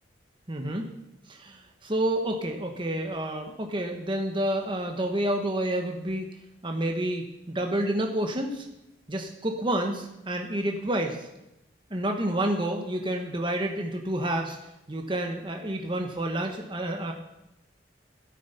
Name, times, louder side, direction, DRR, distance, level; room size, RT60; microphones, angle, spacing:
voice 1, 0.5-0.9 1.3-6.3 6.6-8.7 9.1-11.3 11.9-14.6 14.9-17.1, right 1 dB, 25° right, 3 dB, 1.2 m, -29 dB
13.0 x 12.5 x 5.7 m, 0.89 s
head